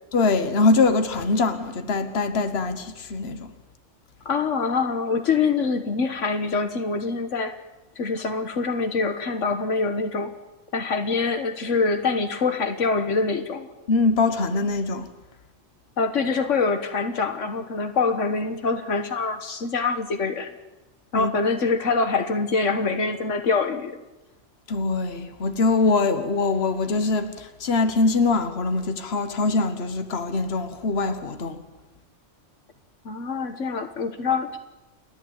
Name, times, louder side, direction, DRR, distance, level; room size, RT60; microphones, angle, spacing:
voice 1, 0.1-3.5 13.9-15.1 21.1-21.3 24.7-31.6, left 3 dB, 55° left, 1.5 m, -23 dB
voice 2, 4.2-7.5 8.0-10.3 10.7-13.7 16.0-20.5 21.1-24.0 33.0-34.6, left 4 dB, 80° left, 1.6 m, -25 dB
29.0 x 11.0 x 8.8 m
omnidirectional pair, 1.3 m